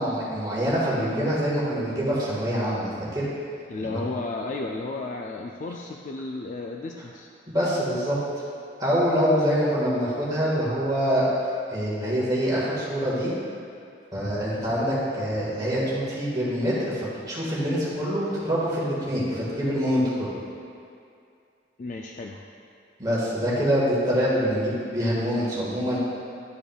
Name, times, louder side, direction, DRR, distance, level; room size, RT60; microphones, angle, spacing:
voice 1, 0.0-3.3 3.8-4.0 7.5-8.2 8.8-11.3 11.7-13.3 14.1-20.3 23.0-26.0, equal, 20° right, -8 dB, 1.7 m, -25 dB
voice 2, 3.7-7.3 21.8-22.4, left 3 dB, 40° left, 1 dB, 0.3 m, -33 dB
11.5 x 4.9 x 2.3 m, 2.4 s
head